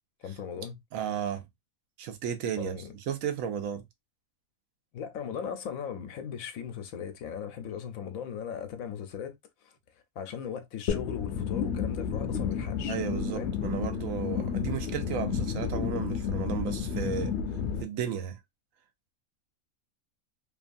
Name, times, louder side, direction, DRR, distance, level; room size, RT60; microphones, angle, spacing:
voice 1, 0.2-0.8 2.6-2.8 4.9-9.4 9.6-9.7 10.2-13.0 13.3-13.6, left 8 dB, 90° left, 1.1 m, -38 dB
voice 2, 0.9-1.5 2.0-2.8 3.1-3.8 12.9-17.3 17.8-18.4, right 8 dB, 85° right, 1.0 m, -33 dB
sound 1, 10.9-17.8, left 7 dB, 65° left, 0.8 m, -31 dB
2.9 x 2.3 x 2.5 m
omnidirectional pair, 1.4 m